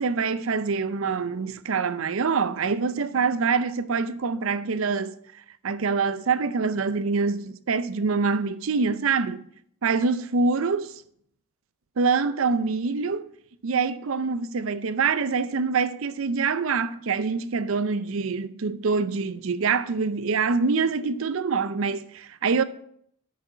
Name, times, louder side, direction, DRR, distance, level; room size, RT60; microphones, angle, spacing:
voice 1, 0.0-5.1 5.6-9.4 9.8-10.9 12.0-13.3 13.6-22.6, right 4 dB, 70° right, 0.5 m, -25 dB
8.2 x 6.3 x 5.6 m
head